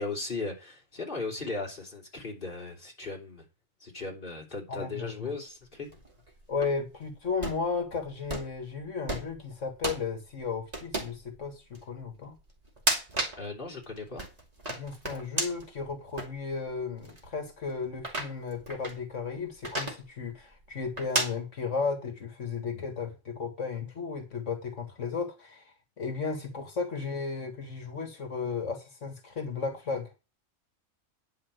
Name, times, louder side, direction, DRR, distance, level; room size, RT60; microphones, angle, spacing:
voice 1, 0.0-3.4 3.8-5.9 13.4-14.2, left 3 dB, 45° left, 3.4 m, -37 dB
voice 2, 4.7-5.3 6.5-12.3 14.7-30.1, left 5 dB, 70° left, 2.1 m, -34 dB
sound 1, 5.8-6.7 7.3-7.6 8.3-8.6 9.1-9.4 9.8-10.0 10.7-11.2 11.7-11.8 12.6-13.4 13.8-15.7 16.2-16.3 17.0-17.2 18.0-18.9 19.6-20.0 21.0-21.3, right 1 dB, 30° right, 2.7 m, -32 dB
10.0 x 5.2 x 8.0 m
omnidirectional pair, 1.3 m